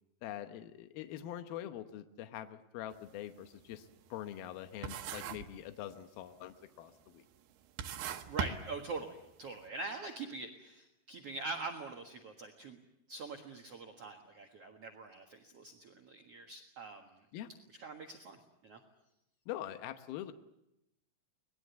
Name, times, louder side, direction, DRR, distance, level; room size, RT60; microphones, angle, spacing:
voice 1, 0.2-7.2 17.3-17.5 19.5-20.3, left 12 dB, 80° left, 8 dB, 2.8 m, -44 dB
sound 1, 2.9-3.1 3.5-4.6 4.8-5.6 5.9-6.4 7.1-7.2 7.6-9.3, right 8 dB, 90° right, 3.2 m, -39 dB
voice 2, 8.3-12.8 13.1-17.2 17.8-18.8, right 3 dB, 50° right, 2 dB, 2.1 m, -44 dB
24.5 x 20.0 x 8.1 m, 0.86 s
omnidirectional pair, 4.4 m